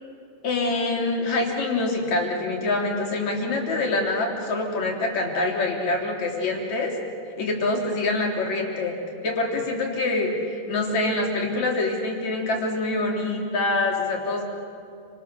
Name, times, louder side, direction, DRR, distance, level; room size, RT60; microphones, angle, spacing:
voice 1, 0.4-6.9 7.4-8.9 9.2-10.3 10.7-14.4, left 2 dB, 60° left, 0 dB, 4.6 m, -25 dB
30.0 x 26.0 x 6.8 m, 2.6 s
omnidirectional pair, 3.6 m